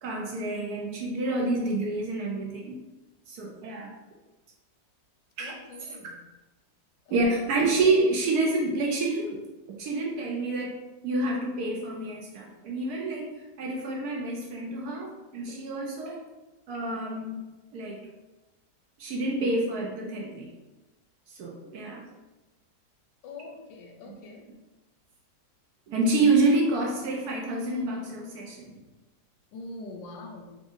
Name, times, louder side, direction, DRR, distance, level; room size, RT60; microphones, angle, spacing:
voice 1, 0.0-2.8 3.3-3.9 5.4-5.6 7.1-9.4 9.8-10.8 11.0-13.3 13.6-16.2 16.7-17.4 17.7-18.0 19.0-20.5 21.4-22.0 25.9-28.7, right 2 dB, 70° right, -1 dB, 1.0 m, -28 dB
voice 2, 5.4-6.2 23.2-24.4 29.5-30.4, left 2 dB, 80° left, 2 dB, 1.3 m, -43 dB
4.8 x 2.6 x 2.5 m, 1.1 s
omnidirectional pair, 1.9 m